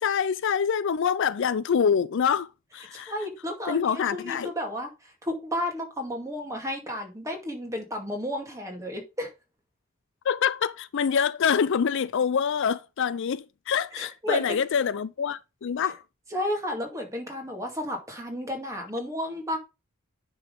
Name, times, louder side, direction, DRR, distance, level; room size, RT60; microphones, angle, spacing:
voice 1, 0.0-2.5 2.7-3.1 3.7-4.5 10.3-16.0, left 7 dB, 60° left, 0.4 m, -25 dB
voice 2, 2.9-4.9 5.2-9.3 14.0-14.6 15.8-15.9 16.3-19.6, left 1 dB, 15° right, 2.2 m, -32 dB
9.7 x 3.8 x 5.2 m
head